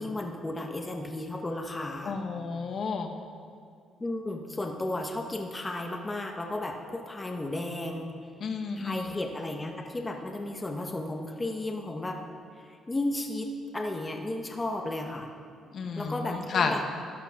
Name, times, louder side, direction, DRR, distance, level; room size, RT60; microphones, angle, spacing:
voice 1, 0.0-2.2 4.0-8.1 8.8-12.2 12.6-13.5 13.7-15.3 16.0-16.8, left 2 dB, 15° left, 3 dB, 1.0 m, -34 dB
voice 2, 2.0-3.1 8.4-9.1 15.7-16.7, left 5 dB, 50° left, 4 dB, 1.2 m, -31 dB
13.5 x 11.5 x 5.8 m, 2.3 s
cardioid pair, 140°, 0 cm